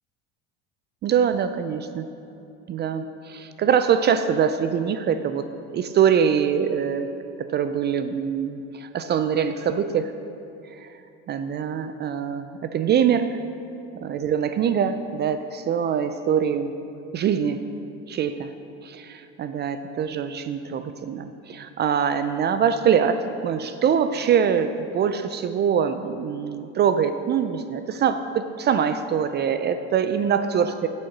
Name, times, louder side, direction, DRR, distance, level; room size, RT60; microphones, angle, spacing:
voice 1, 1.0-2.1 2.7-5.4 5.7-7.1 7.4-10.1 10.7-10.9 11.3-13.4 14.0-16.7 17.1-17.6 18.1-18.5 18.8-30.9, right 7 dB, 30° right, 10 dB, 0.4 m, -23 dB
8.5 x 6.3 x 5.9 m, 2.8 s
supercardioid pair, 100°, 33 cm